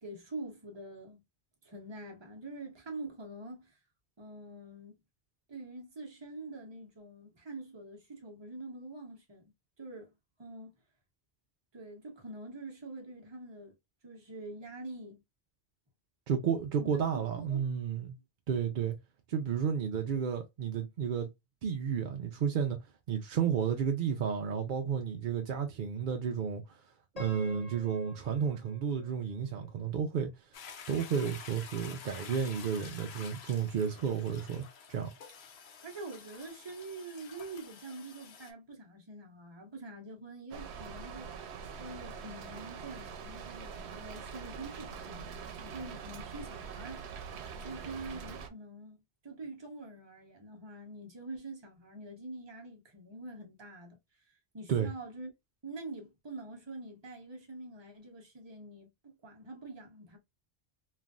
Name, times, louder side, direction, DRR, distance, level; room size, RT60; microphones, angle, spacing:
voice 1, 0.0-1.2 1.6-3.8 4.2-5.0 5.5-10.1 10.4-10.7 11.7-13.7 14.0-15.2 16.8-17.7 35.8-47.3 47.6-54.0 54.3-55.3 55.6-60.2, right 2 dB, 25° right, 0.9 m, -45 dB
voice 2, 16.3-18.2 18.5-19.0 19.3-21.3 21.6-22.8 23.1-26.8 27.1-30.3 30.9-35.1 54.7-54.9, right 7 dB, 60° right, 0.6 m, -32 dB
Piano, 27.2-30.2, left 1 dB, 40° left, 0.9 m, -50 dB
Toilet flush, 30.5-38.5, left 7 dB, 80° left, 0.9 m, -49 dB
Rain, 40.5-48.5, right 6 dB, 90° right, 0.9 m, -44 dB
3.2 x 2.5 x 2.3 m
omnidirectional pair, 1.1 m